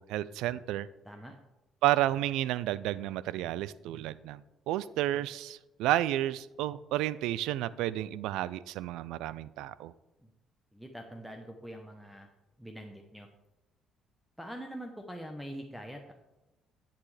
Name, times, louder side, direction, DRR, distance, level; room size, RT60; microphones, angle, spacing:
voice 1, 0.0-0.9 1.8-9.9, right 14 dB, 90° right, 18 dB, 0.3 m, -31 dB
voice 2, 10.7-12.3 12.6-13.3 14.4-16.1, equal, ahead, 4 dB, 0.8 m, -44 dB
10.0 x 8.5 x 3.3 m, 0.99 s
cardioid pair, 105°, 0 cm